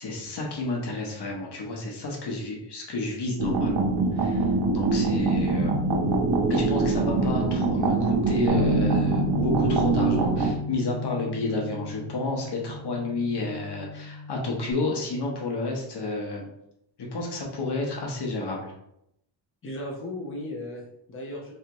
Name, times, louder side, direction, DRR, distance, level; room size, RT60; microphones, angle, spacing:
voice 1, 0.0-3.9 4.2-4.5 4.7-5.7 6.5-16.5 17.0-18.7, left 2 dB, 65° left, -1 dB, 1.1 m, -31 dB
sound 1, 3.4-10.5, right 3 dB, 85° right, 0.8 m, -24 dB
Bass guitar, 8.5-14.7, left 3 dB, 5° right, 1.4 m, -32 dB
voice 2, 19.6-21.5, left 1 dB, 30° left, -2 dB, 0.8 m, -36 dB
3.6 x 3.3 x 3.0 m, 0.77 s
wide cardioid pair, 125°, 44 cm